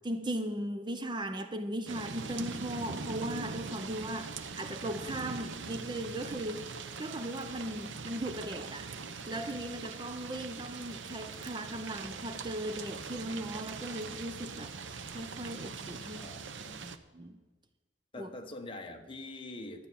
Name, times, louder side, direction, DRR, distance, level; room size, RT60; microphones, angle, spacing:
voice 1, 0.0-6.7 7.0-8.9 9.3-16.3 16.8-17.4 18.2-18.3, right 1 dB, 25° right, 9 dB, 0.6 m, -38 dB
sound 1, 1.9-17.0, right 5 dB, 85° right, 0.8 m, -42 dB
voice 2, 15.9-16.9 18.1-19.9, left 2 dB, 30° left, 4 dB, 1.3 m, -45 dB
12.0 x 8.9 x 7.0 m, 1.3 s
head